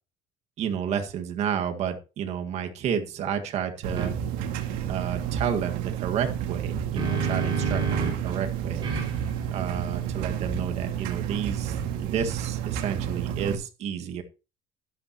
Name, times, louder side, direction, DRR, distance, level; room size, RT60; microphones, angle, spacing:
voice 1, 0.6-4.1 4.9-8.9 9.5-14.2, right 8 dB, 50° right, 5 dB, 1.8 m, -31 dB
sound 1, 3.8-13.5, right 9 dB, 80° right, 2.0 m, -30 dB
sound 2, 4.0-4.1 6.5-8.3 8.8-12.2, right 4 dB, 35° right, 5.6 m, -32 dB
12.0 x 11.5 x 3.0 m, 0.31 s
cardioid pair, 160°, 14 cm